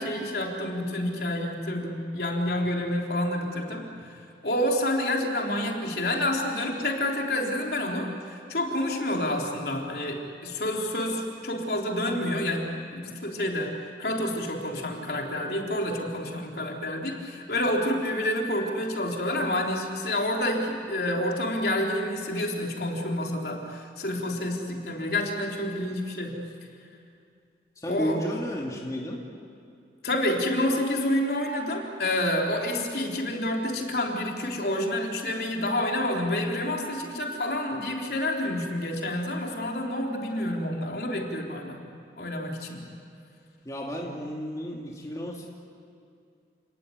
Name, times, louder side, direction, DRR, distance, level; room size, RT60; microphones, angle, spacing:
voice 1, 0.0-26.4 27.9-28.2 30.0-41.8 42.2-42.8, left 1 dB, 65° left, 0 dB, 3.6 m, -28 dB
voice 2, 27.8-29.2 43.6-45.5, equal, 20° left, -2 dB, 2.5 m, -32 dB
29.0 x 18.5 x 9.7 m, 2.4 s
head